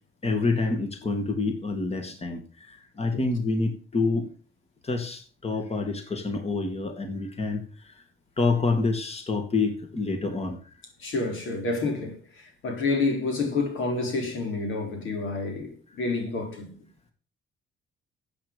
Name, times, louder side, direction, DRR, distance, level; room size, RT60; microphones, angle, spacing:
voice 1, 0.2-4.3 4.8-8.0 8.4-10.6, left 3 dB, 30° left, 2.4 m, -27 dB
voice 2, 11.0-16.8, left 3 dB, 80° left, 4.0 m, -29 dB
13.5 x 8.6 x 5.3 m
cardioid pair, 90°, 20 cm